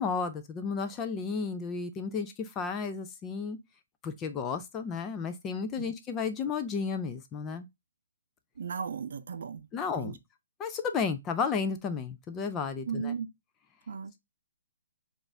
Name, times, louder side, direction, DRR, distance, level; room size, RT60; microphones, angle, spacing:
voice 1, 0.0-3.6 4.0-7.7 9.7-10.2 10.6-13.1, left 5 dB, 15° left, 0.3 m, -33 dB
voice 2, 8.6-9.7 10.0-10.2 12.8-13.3 13.9-14.1, right 6 dB, 60° right, 0.5 m, -35 dB
4.0 x 2.4 x 3.3 m
hypercardioid pair, 170°, 0 cm